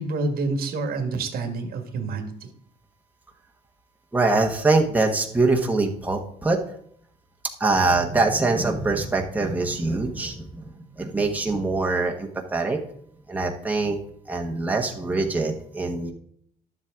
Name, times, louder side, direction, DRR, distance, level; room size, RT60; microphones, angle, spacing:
voice 1, 0.0-2.3, right 3 dB, 65° right, 6 dB, 1.6 m, -28 dB
voice 2, 4.1-6.6 7.6-12.8 13.3-14.0 14.3-16.1, right 3 dB, 10° right, 1 dB, 1.2 m, -23 dB
11.5 x 7.4 x 3.7 m, 0.65 s
cardioid pair, 110°, 17 cm